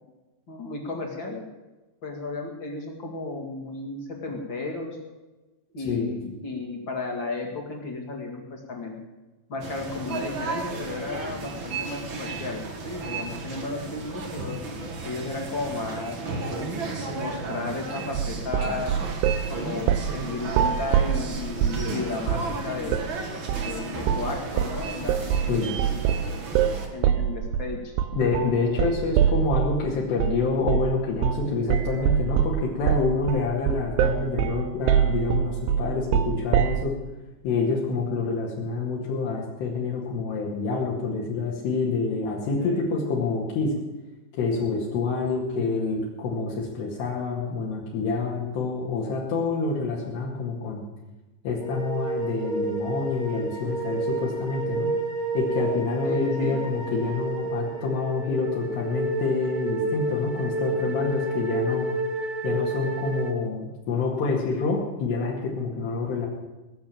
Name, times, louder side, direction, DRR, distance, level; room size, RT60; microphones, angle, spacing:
voice 1, 0.5-1.4 2.0-5.0 5.7-9.0 9.5-14.0 14.3-14.6 15.0-16.7 17.1-19.0 19.5-23.0 23.5-26.0 26.9-27.9 42.6-42.8 56.0-56.6, left 3 dB, 35° left, 1 dB, 2.1 m, -34 dB
sound 1, 9.6-26.9, right 3 dB, 50° right, 1.4 m, -34 dB
sound 2, 18.2-19.5 19.9-20.2 20.5-21.9 22.3-22.5 22.9-23.1 23.5-23.7 24.1-24.3 24.6-29.8 30.2-30.4 30.7-31.0 31.2-31.5 31.7-36.8, right 9 dB, 80° right, 2.7 m, -24 dB
voice 2, 25.5-25.8 28.1-36.9 37.4-43.7 44.3-50.8 51.4-54.9 55.3-61.9 62.4-66.3, left 4 dB, 70° left, -4 dB, 4.2 m, -27 dB
sound 3, 51.6-63.3, right 2 dB, 15° right, 2.3 m, -30 dB
19.5 x 7.2 x 8.8 m, 1.1 s
omnidirectional pair, 5.1 m